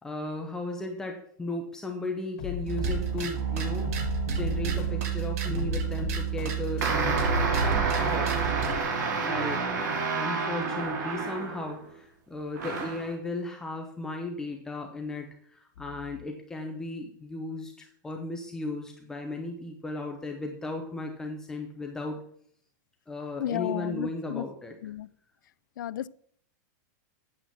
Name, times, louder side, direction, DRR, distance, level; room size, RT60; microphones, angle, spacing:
voice 1, 0.0-3.9 4.3-7.2 7.5-8.3 9.2-22.2 23.1-24.7, left 2 dB, 5° left, 2 dB, 0.8 m, -36 dB
sound 1, 2.4-8.8, left 11 dB, 45° left, 2.5 m, -38 dB
sound 2, 2.7-8.8, right 8 dB, 50° right, 1.7 m, -30 dB
sound 3, 6.8-11.9 12.6-13.1, right 4 dB, 65° right, 2.4 m, -29 dB
voice 2, 23.4-24.5 24.8-25.1 25.8-26.1, left 11 dB, 85° left, 18 dB, 0.5 m, -33 dB
8.7 x 7.6 x 6.9 m, 0.63 s
supercardioid pair, 175°, 10 cm